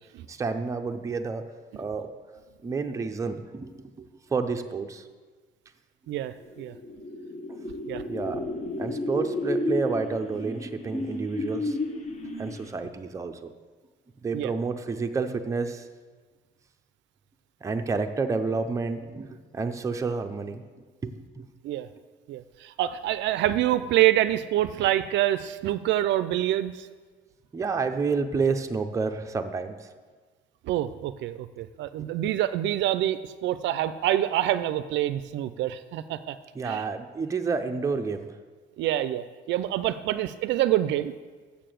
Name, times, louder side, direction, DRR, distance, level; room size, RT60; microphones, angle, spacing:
voice 1, 0.3-1.5 1.8-2.1 2.6-5.1 8.1-8.4 8.8-11.8 12.4-13.5 14.2-15.9 17.6-19.3 19.5-20.6 21.0-21.5 27.5-29.9 32.0-32.1 36.5-38.4, right 4 dB, 15° right, 5 dB, 0.5 m, -30 dB
voice 2, 6.1-6.7 7.9-8.0 14.3-14.5 21.6-21.9 22.3-26.9 30.6-36.4 36.6-36.8 38.8-41.1, right 13 dB, 65° right, 13 dB, 0.4 m, -26 dB
sound 1, 6.4-12.9, left 2 dB, 35° left, 1.0 m, -32 dB
7.1 x 6.8 x 7.6 m, 1.4 s
cardioid pair, 155°, 20 cm